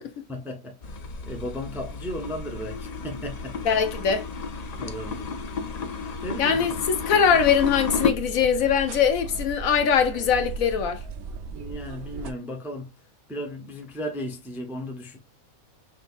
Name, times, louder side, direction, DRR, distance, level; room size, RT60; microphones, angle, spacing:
voice 1, 0.3-3.6 4.7-5.3 6.2-6.6 11.5-12.9 13.3-15.2, equal, ahead, 0.6 m, -35 dB
sound 1, 0.8-8.1, left 4 dB, 85° left, 0.3 m, -32 dB
voice 2, 3.6-4.3 6.4-11.0, left 7 dB, 70° left, 1.1 m, -22 dB
sound 2, 7.2-12.3, right 4 dB, 80° right, 1.1 m, -36 dB
6.0 x 2.8 x 2.5 m
omnidirectional pair, 1.5 m